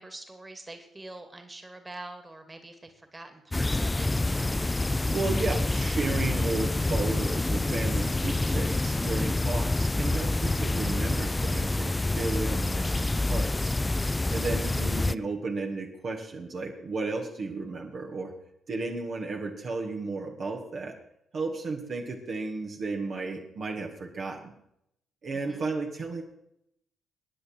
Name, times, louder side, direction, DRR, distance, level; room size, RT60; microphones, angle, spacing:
voice 1, 0.0-4.1 14.5-14.9 25.3-25.6, right 2 dB, 20° right, 7 dB, 2.7 m, -45 dB
sound 1, 3.5-15.1, left 2 dB, 20° left, 0.5 m, -27 dB
voice 2, 5.1-13.7 14.3-18.3 18.7-21.0 21.3-24.6 25.2-26.2, right 3 dB, 50° right, 0 dB, 2.3 m, -33 dB
24.0 x 10.5 x 4.8 m, 0.77 s
figure-of-eight pair, 45°, 0 cm